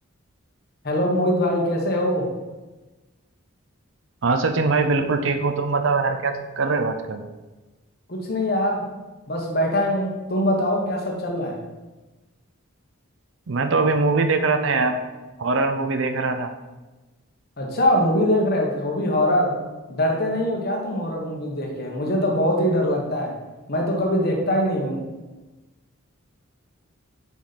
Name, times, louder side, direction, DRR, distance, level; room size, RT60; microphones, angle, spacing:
voice 1, 0.8-2.3 8.1-8.8 9.3-11.6 17.6-19.6 19.9-23.4 23.7-25.0, left 1 dB, 45° left, 0 dB, 1.3 m, -22 dB
voice 2, 4.2-7.2 13.5-15.0 15.4-16.5, right 3 dB, 60° right, 7 dB, 0.6 m, -22 dB
6.7 x 5.1 x 4.2 m, 1.2 s
head